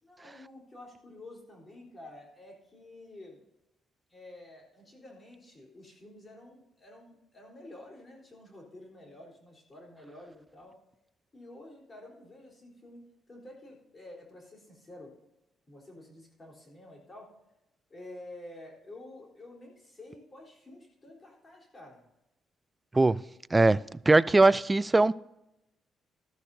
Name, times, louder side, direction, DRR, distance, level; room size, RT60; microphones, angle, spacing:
voice 1, 0.0-3.4 4.1-10.8 11.3-13.0 13.3-15.1 15.7-17.3 17.9-22.0, left 1 dB, 30° left, 3.8 m, -50 dB
voice 2, 24.1-25.1, right 2 dB, 20° right, 0.3 m, -21 dB
13.5 x 12.5 x 2.7 m
cardioid pair, 90°, 0 cm